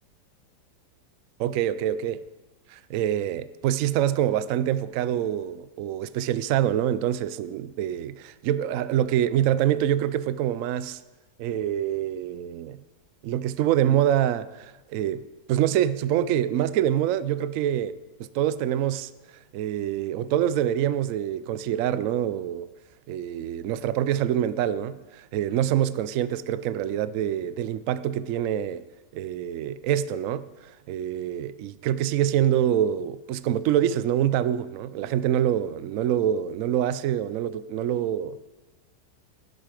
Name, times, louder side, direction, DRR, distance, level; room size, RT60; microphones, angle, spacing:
voice 1, 1.4-2.2 2.7-11.0 11.4-12.8 13.2-15.2 15.5-19.1 19.5-22.7 23.1-28.8 29.1-38.4, right 11 dB, 75° right, 0.7 m, -25 dB
12.0 x 10.5 x 5.0 m
omnidirectional pair, 1.9 m